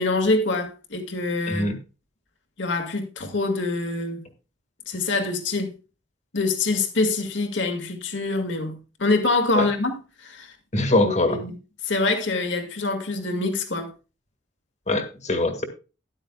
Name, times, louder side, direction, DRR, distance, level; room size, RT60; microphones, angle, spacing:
voice 1, 0.0-1.7 2.6-4.2 4.9-5.7 6.3-10.5 11.0-11.5 11.8-13.9, left 3 dB, 70° left, 2.1 m, -25 dB
voice 2, 10.7-11.4 14.9-15.7, left 2 dB, 35° left, 1.8 m, -22 dB
13.0 x 11.0 x 2.3 m
head